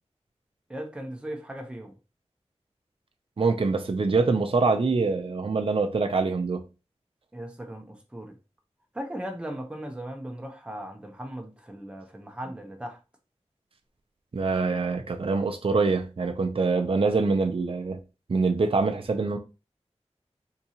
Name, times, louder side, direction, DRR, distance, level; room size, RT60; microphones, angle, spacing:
voice 1, 0.7-1.9 7.3-8.4 8.9-13.0, right 1 dB, 10° right, 0.7 m, -38 dB
voice 2, 3.4-6.6 14.3-18.0 18.3-19.4, right 4 dB, 50° right, 0.5 m, -24 dB
3.7 x 2.7 x 2.8 m
wide cardioid pair, 45°, 12 cm